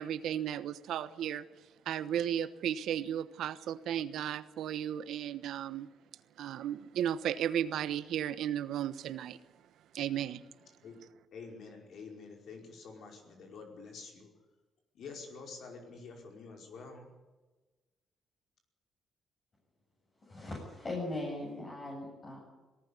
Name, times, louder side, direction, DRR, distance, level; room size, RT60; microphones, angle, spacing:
voice 1, 0.0-1.5 1.8-5.9 6.4-9.4 9.9-10.4, right 10 dB, 80° right, 14 dB, 1.1 m, -34 dB
voice 2, 11.3-14.3 14.9-17.1, left 4 dB, 65° left, 2 dB, 5.1 m, -48 dB
voice 3, 20.2-22.4, left 2 dB, 35° left, -3 dB, 7.7 m, -39 dB
19.0 x 17.5 x 8.4 m, 1.2 s
cardioid pair, 90°, 0 cm